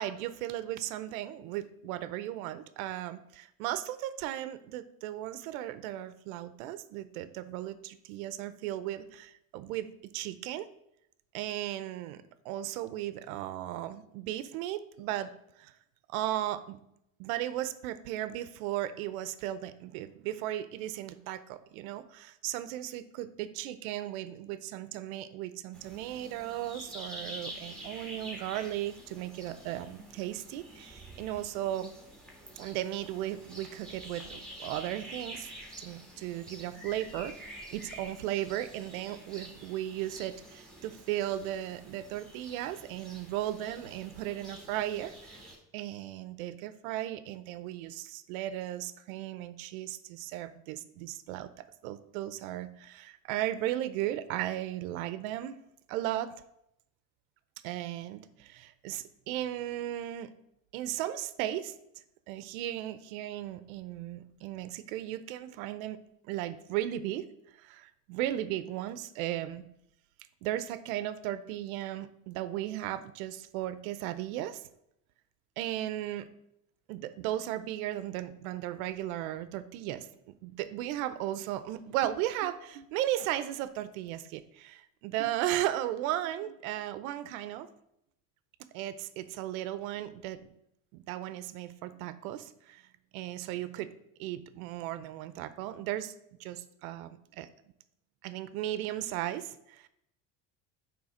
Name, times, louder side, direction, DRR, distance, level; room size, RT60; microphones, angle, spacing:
voice 1, 0.0-10.7 11.3-15.3 15.6-15.7 16.1-16.8 17.2-31.9 32.6-35.5 35.8-45.4 45.7-55.6 55.9-56.3 57.6-60.3 60.7-61.8 62.3-67.3 67.6-69.7 70.4-74.6 75.6-76.3 76.9-87.7 88.7-90.5 90.9-92.8 93.1-93.9 94.2-96.1 96.4-97.5 98.2-99.9, right 13 dB, 85° right, 14 dB, 0.7 m, -36 dB
sound 1, 25.7-45.6, right 1 dB, ahead, 1.7 m, -48 dB
8.9 x 3.4 x 4.9 m, 0.77 s
supercardioid pair, 110°, 40 cm